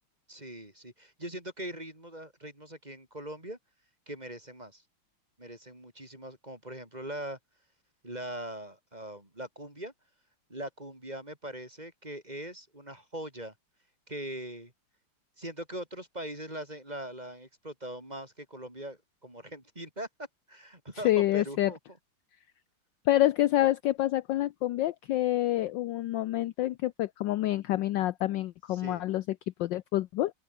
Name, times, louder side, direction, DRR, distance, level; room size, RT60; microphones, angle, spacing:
voice 1, 0.3-3.6 4.1-4.8 5.4-7.4 8.0-9.9 10.5-13.5 14.1-14.7 15.4-20.1 20.5-21.8 28.7-29.0, right 1 dB, 20° right, 6.0 m, -41 dB
voice 2, 21.0-21.7 23.1-29.2 29.6-30.3, left 14 dB, 70° left, 1.2 m, -27 dB
open air
omnidirectional pair, 2.4 m